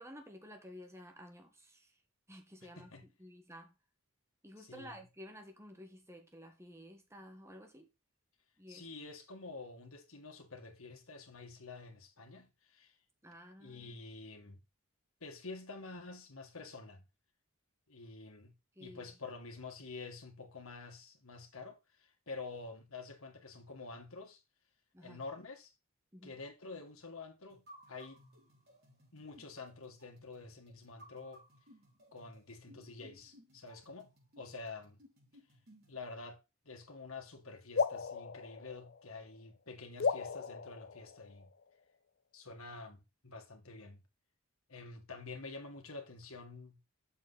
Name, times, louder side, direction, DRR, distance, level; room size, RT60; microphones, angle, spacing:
voice 1, 0.0-1.9 2.3-2.9 3.2-3.7 4.4-7.9 8.6-8.8 13.2-14.0 18.7-19.1 24.9-25.2 26.1-26.3, equal, 10° right, 1.6 m, -52 dB
voice 2, 2.6-3.0 4.6-5.0 8.7-13.0 13.6-14.6 15.2-17.0 17.9-18.5 18.8-24.4 25.0-25.7 26.2-28.2 29.1-31.4 32.1-34.1 34.4-35.0 35.9-41.5 42.3-44.0 44.7-46.8, left 3 dB, 70° left, 2.0 m, -48 dB
sound 1, 27.5-36.0, equal, 45° right, 4.5 m, -61 dB
sound 2, 37.8-39.4 40.0-41.7, left 5 dB, 50° left, 0.5 m, -36 dB
7.2 x 6.2 x 4.0 m
head